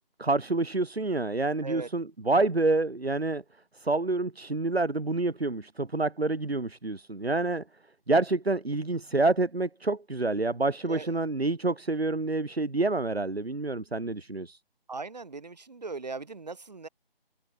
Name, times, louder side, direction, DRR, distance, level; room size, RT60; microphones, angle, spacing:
voice 1, 0.2-3.4 3.7-7.6 8.1-14.6, right 2 dB, 85° right, 1.3 m, -27 dB
voice 2, 14.9-16.9, right 4 dB, 45° right, 7.2 m, -38 dB
figure-of-eight pair, 160°, 30 cm